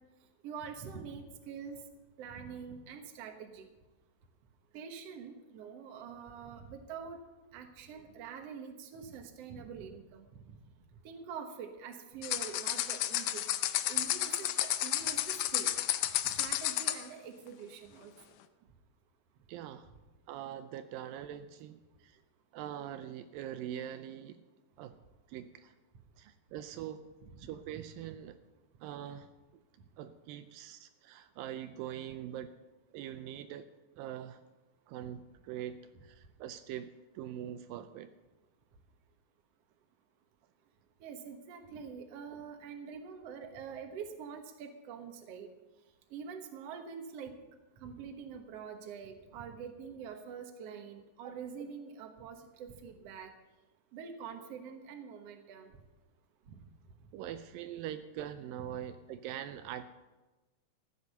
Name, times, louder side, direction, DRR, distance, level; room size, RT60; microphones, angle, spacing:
voice 1, 0.4-1.8 2.2-3.7 4.7-7.2 7.5-10.6 11.0-13.5 13.8-15.7 16.0-18.1 19.9-20.0 27.2-27.4 27.7-27.8 41.0-45.5 46.1-47.3 47.8-53.3 53.9-55.7 56.5-56.6, right 6 dB, 60° right, 5 dB, 1.9 m, -45 dB
sound 1, 12.2-17.1, left 13 dB, 85° left, 1.7 m, -32 dB
voice 2, 19.5-19.9 20.3-22.2 22.5-24.4 24.8-25.0 25.3-25.7 26.2-27.1 27.4-28.4 28.8-29.3 30.0-32.5 32.9-33.7 34.0-34.4 34.9-38.1 51.2-51.3 57.1-59.8, right 11 dB, 80° right, 10 dB, 2.3 m, -43 dB
14.5 x 8.2 x 6.8 m, 1.2 s
omnidirectional pair, 4.2 m